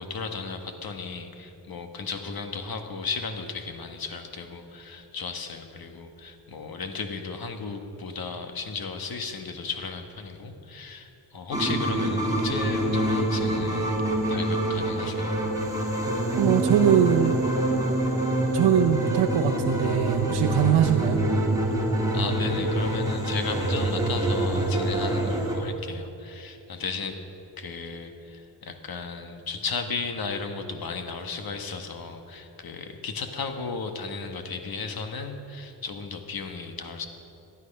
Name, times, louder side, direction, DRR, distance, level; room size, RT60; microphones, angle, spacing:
voice 1, 0.0-14.0 14.3-15.4 22.1-27.2 27.6-37.1, left 4 dB, 55° left, 6 dB, 1.7 m, -35 dB
sound 1, 11.5-25.6, right 1 dB, 10° right, 3.6 m, -26 dB
voice 2, 16.4-17.4 18.5-21.2, right 9 dB, 65° right, 2 dB, 0.9 m, -22 dB
18.5 x 11.5 x 5.5 m, 2.9 s
cardioid pair, 65°, 43 cm